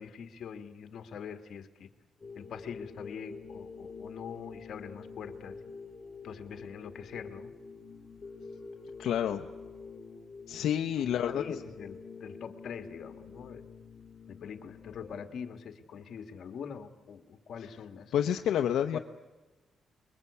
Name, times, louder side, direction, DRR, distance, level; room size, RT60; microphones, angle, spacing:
voice 1, 0.0-1.9 2.4-5.6 6.2-7.5 11.0-13.6 14.3-18.1 18.9-19.0, left 7 dB, 60° left, 8 dB, 1.8 m, -43 dB
sound 1, 2.2-15.3, left 4 dB, 30° left, 2.4 m, -47 dB
voice 2, 9.0-9.5 10.5-11.4 18.1-19.0, left 10 dB, 85° left, 5 dB, 0.8 m, -29 dB
29.5 x 21.5 x 8.4 m, 1.2 s
cardioid pair, 135°, 0 cm